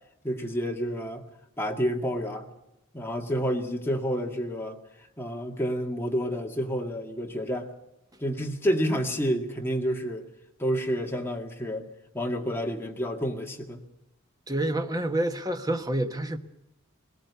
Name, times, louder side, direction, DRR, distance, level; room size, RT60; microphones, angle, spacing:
voice 1, 0.2-1.2 1.6-2.5 2.9-7.7 8.2-10.3 10.6-11.8 12.1-13.8, equal, 10° left, 2.0 m, -29 dB
voice 2, 14.5-16.4, right 1 dB, 20° right, 1.2 m, -28 dB
21.0 x 19.0 x 7.0 m
head